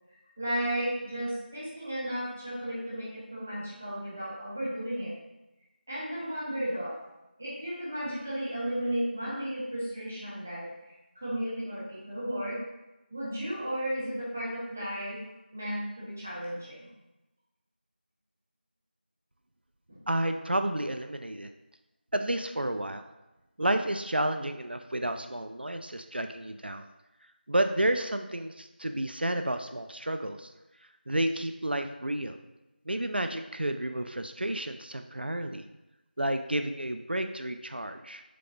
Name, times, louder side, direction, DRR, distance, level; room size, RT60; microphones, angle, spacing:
voice 1, 0.4-5.1 5.9-7.0 7.4-12.6 13.1-15.2 15.5-16.9 19.9-20.0, equal, 10° right, -8 dB, 0.7 m, -34 dB
voice 2, 20.1-21.5 22.1-23.0 23.6-26.9 27.5-30.5 31.1-32.4 32.9-35.7 36.2-38.2, right 1 dB, 65° right, 7 dB, 0.5 m, -31 dB
6.6 x 3.8 x 3.8 m, 0.99 s
figure-of-eight pair, 175°, 6 cm